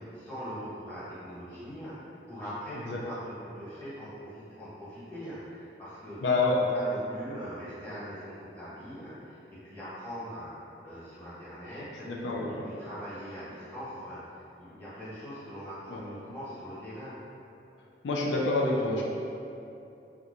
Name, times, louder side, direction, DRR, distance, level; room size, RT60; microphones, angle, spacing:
voice 1, 0.1-2.0 2.3-6.2 6.7-9.4 9.6-10.5 10.8-12.1 12.6-14.2 14.6-17.2, equal, 10° left, -13 dB, 1.2 m, -41 dB
voice 2, 6.2-6.6 12.1-12.7 15.9-16.0 18.0-19.0, left 2 dB, 90° left, -2 dB, 0.4 m, -27 dB
2.9 x 2.1 x 3.7 m, 2.8 s
head